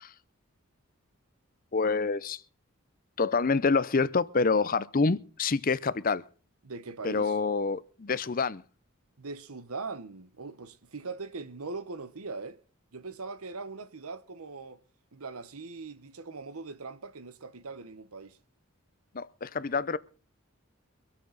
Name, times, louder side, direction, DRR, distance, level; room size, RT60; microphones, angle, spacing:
voice 1, 1.7-2.4 3.2-6.2 7.0-8.6 19.1-20.0, left 4 dB, 40° left, 0.6 m, -27 dB
voice 2, 6.6-7.4 9.2-12.6 12.9-14.8 15.1-18.4, right 4 dB, 90° right, 1.1 m, -41 dB
24.5 x 8.6 x 4.0 m
head